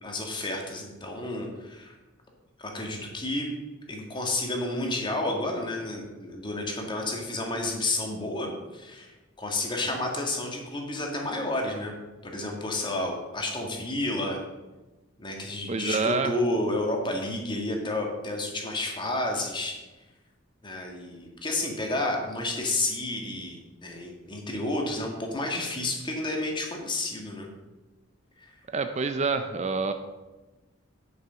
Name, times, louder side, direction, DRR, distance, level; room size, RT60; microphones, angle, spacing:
voice 1, 0.0-2.0 2.6-3.5 3.9-11.9 12.2-14.4 15.2-19.8 20.6-27.5 28.4-28.5, left 2 dB, 25° left, 1 dB, 1.8 m, -31 dB
voice 2, 15.7-16.3 28.7-29.9, right 4 dB, 35° right, 8 dB, 0.5 m, -27 dB
9.8 x 6.9 x 5.7 m, 1.1 s
head